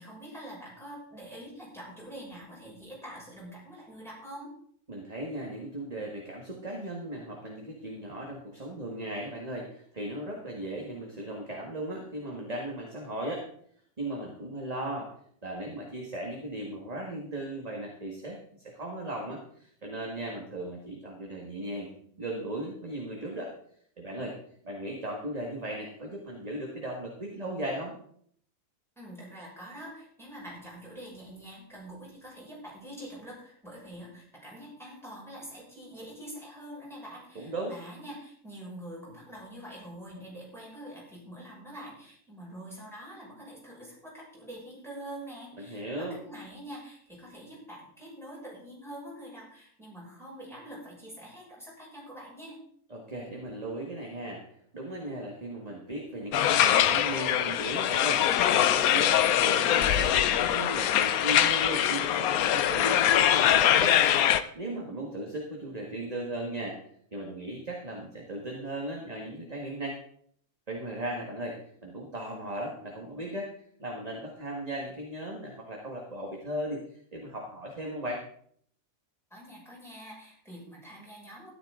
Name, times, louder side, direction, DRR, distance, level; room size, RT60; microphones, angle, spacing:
voice 1, 0.0-4.5 29.0-52.6 79.3-81.5, right 1 dB, ahead, -6 dB, 6.1 m, -45 dB
voice 2, 4.9-13.5 14.0-15.1 15.4-21.9 22.2-23.5 24.0-24.4 24.6-27.9 37.4-37.7 45.6-46.2 52.9-54.4 54.7-64.0 64.6-66.8 67.1-70.0 70.7-73.5 73.8-78.2, right 1 dB, 25° right, -1 dB, 1.9 m, -37 dB
sound 1, 56.3-64.4, left 11 dB, 75° left, 1.1 m, -23 dB
13.5 x 11.5 x 3.8 m, 0.62 s
omnidirectional pair, 1.5 m